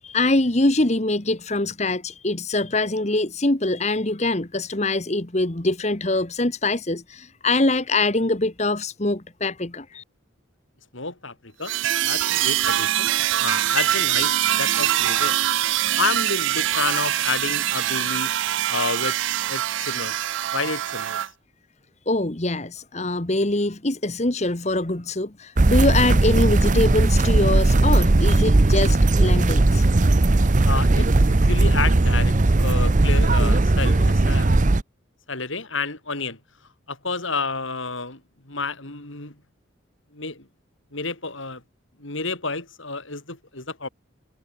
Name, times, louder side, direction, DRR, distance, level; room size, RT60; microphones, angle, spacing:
voice 1, 0.0-10.0 22.1-29.8, left 2 dB, 35° left, 1.4 m, -23 dB
voice 2, 10.9-11.7 12.0-15.4 16.0-18.3 18.7-19.2 19.5-20.2 20.5-21.2 30.6-34.6 35.3-36.4 36.9-39.4 40.1-40.5 40.9-41.6 42.0-43.9, left 4 dB, 75° left, 4.8 m, -30 dB
sound 1, 11.7-21.3, right 13 dB, 70° right, 0.4 m, -23 dB
sound 2, 25.6-34.8, right 2 dB, 40° right, 0.7 m, -18 dB
head